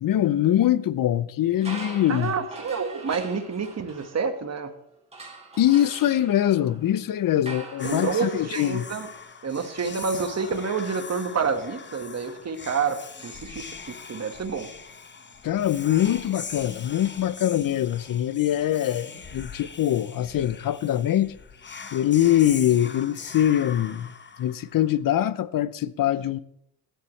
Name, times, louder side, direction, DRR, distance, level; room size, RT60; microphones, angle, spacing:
voice 1, 0.0-2.3 5.6-8.9 15.4-21.3 21.9-24.1 24.4-26.4, left 12 dB, 50° left, 0.7 m, -23 dB
sound 1, 1.5-4.6 5.1-14.1, right 2 dB, 15° right, 4.3 m, -45 dB
voice 2, 2.1-4.7 7.8-9.1 9.4-14.7, right 5 dB, 35° right, 1.6 m, -28 dB
Whispering, 7.8-24.9, left 5 dB, 25° left, 1.0 m, -41 dB
16.5 x 11.5 x 3.2 m
cardioid pair, 85°, 44 cm